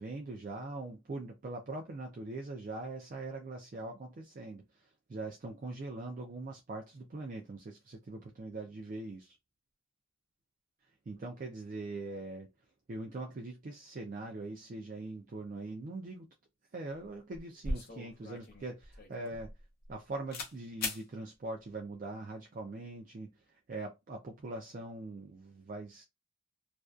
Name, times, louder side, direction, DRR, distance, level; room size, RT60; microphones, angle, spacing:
voice 1, 0.0-9.4 11.1-12.5 12.9-16.3 16.7-19.5 19.9-26.0, right 2 dB, 40° right, 0.3 m, -42 dB
sound 1, 17.0-17.1 17.3-20.0 20.3-20.5 20.8-21.0, left 2 dB, 45° left, 0.7 m, -39 dB
2.4 x 2.2 x 2.3 m
head